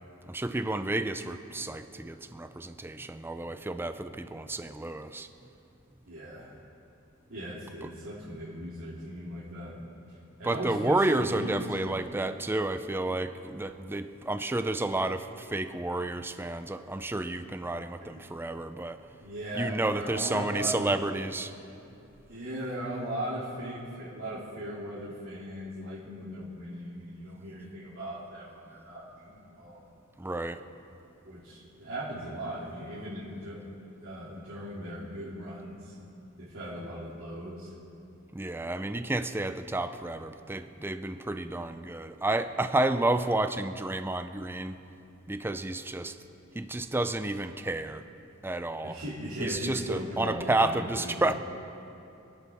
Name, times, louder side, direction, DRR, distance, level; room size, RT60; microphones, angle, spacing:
voice 1, 0.3-5.3 10.4-19.0 19.6-21.5 30.2-30.6 38.3-44.8 45.3-46.1 46.6-48.0 48.4-49.0 49.4-51.3, right 2 dB, 10° right, 10 dB, 0.5 m, -30 dB
voice 2, 6.1-6.6 7.3-9.8 10.4-12.0 18.0-18.2 19.2-21.0 22.3-29.9 31.2-33.6 34.0-35.9 36.4-37.7 48.8-51.4, equal, 75° right, -10 dB, 2.7 m, -38 dB
29.0 x 11.0 x 3.5 m, 2.8 s
head